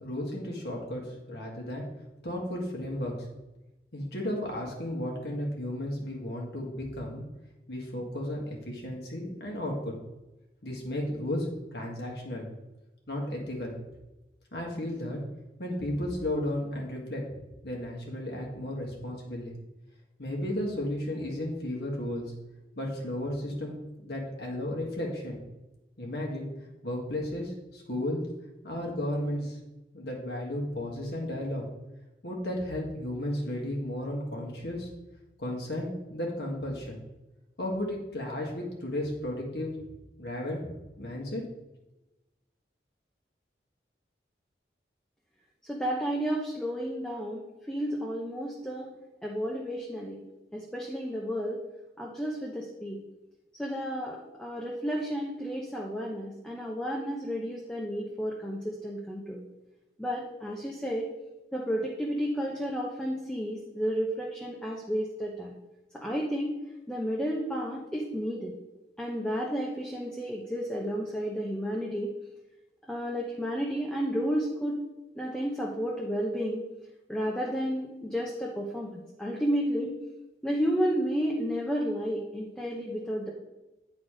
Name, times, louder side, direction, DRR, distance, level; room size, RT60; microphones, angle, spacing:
voice 1, 0.0-1.9 2.2-3.3 3.9-7.2 7.7-9.9 10.6-12.5 13.1-13.8 14.5-15.2 15.6-17.2 17.6-19.5 20.2-22.3 22.8-25.4 26.0-26.5 26.8-28.2 28.6-29.6 29.9-31.6 32.2-34.9 35.4-37.0 37.6-39.8 40.2-41.4, left 1 dB, 70° left, -1 dB, 1.7 m, -34 dB
voice 2, 45.6-48.9 49.2-50.2 50.5-51.6 52.0-53.0 53.6-59.4 60.0-61.1 61.5-65.6 65.9-66.5 66.9-68.5 69.0-72.1 72.9-74.8 75.2-76.6 77.1-79.9 80.4-83.3, equal, 5° left, -3 dB, 0.8 m, -32 dB
9.3 x 4.1 x 4.9 m, 1.0 s
head